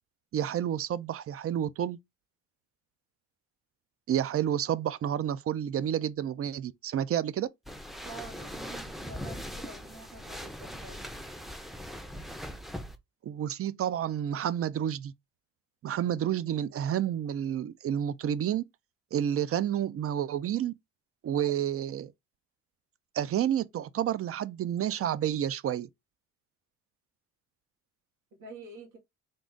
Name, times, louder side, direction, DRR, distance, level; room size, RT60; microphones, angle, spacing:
voice 1, 0.3-2.0 4.1-7.5 13.2-15.1 15.8-18.6 19.1-20.7 21.2-22.1 23.1-25.9, right 10 dB, 50° right, 0.5 m, -30 dB
sound 1, 7.7-13.0, equal, ahead, 0.5 m, -41 dB
voice 2, 8.0-11.0 28.4-29.0, right 2 dB, 90° right, 1.7 m, -47 dB
3.8 x 2.4 x 3.7 m
cardioid pair, 90°, 30 cm